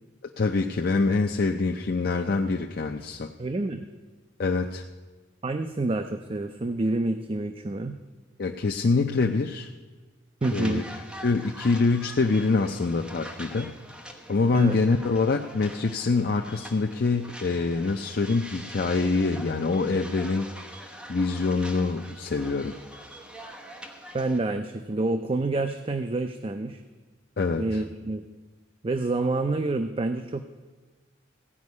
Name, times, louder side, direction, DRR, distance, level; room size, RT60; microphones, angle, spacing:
voice 1, 0.4-3.3 4.4-4.9 8.4-9.7 10.5-10.8 11.2-13.7 14.3-20.5 21.1-22.7 27.4-27.8, left 3 dB, 50° left, 3 dB, 0.5 m, -25 dB
voice 2, 3.4-3.9 5.4-8.0 10.4-10.8 14.5-14.8 24.1-26.8 27.6-28.3 28.8-30.5, right 2 dB, 30° right, 8 dB, 0.5 m, -28 dB
sound 1, 10.4-24.4, equal, 5° right, 1.0 m, -44 dB
15.5 x 5.4 x 9.4 m, 1.3 s
head